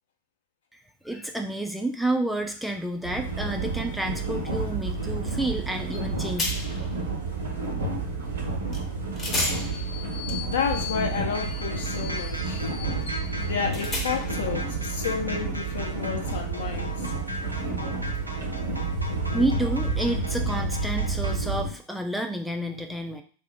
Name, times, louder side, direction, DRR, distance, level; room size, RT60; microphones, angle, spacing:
voice 1, 1.0-6.6 19.3-23.2, right 1 dB, ahead, 3 dB, 0.4 m, -30 dB
sound 1, 3.0-21.7, right 3 dB, 70° right, 0.8 m, -30 dB
sound 2, 5.9-6.1 6.4-6.9 8.7-8.8 9.2-14.5, left 3 dB, 25° left, 0.9 m, -34 dB
voice 2, 10.5-12.6 13.4-16.9, left 7 dB, 60° left, 2 dB, 0.7 m, -31 dB
sound 3, 11.3-21.3, left 1 dB, 90° right, 0.5 m, -39 dB
3.5 x 2.0 x 4.2 m, 0.42 s
figure-of-eight pair, 90°, 0 cm